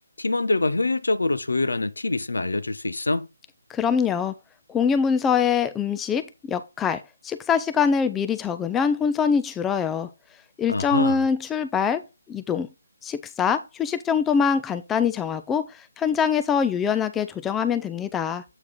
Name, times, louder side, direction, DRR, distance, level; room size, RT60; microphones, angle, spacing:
voice 1, 0.2-3.3 10.7-11.2, left 2 dB, 70° left, 0.9 m, -25 dB
voice 2, 3.7-4.3 4.7-10.1 10.6-12.7 13.0-18.4, left 6 dB, 10° left, 0.4 m, -24 dB
8.1 x 4.9 x 3.8 m
figure-of-eight pair, 145°, 0 cm